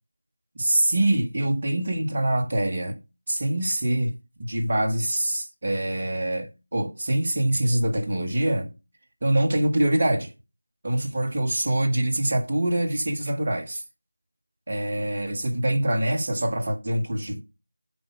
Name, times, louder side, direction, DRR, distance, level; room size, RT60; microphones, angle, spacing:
voice 1, 0.5-3.0 3.3-4.1 4.4-8.8 9.2-10.3 10.8-13.8 14.7-17.4, right 1 dB, 35° right, 1.4 m, -24 dB
8.3 x 5.0 x 4.9 m
figure-of-eight pair, 170°, 0 cm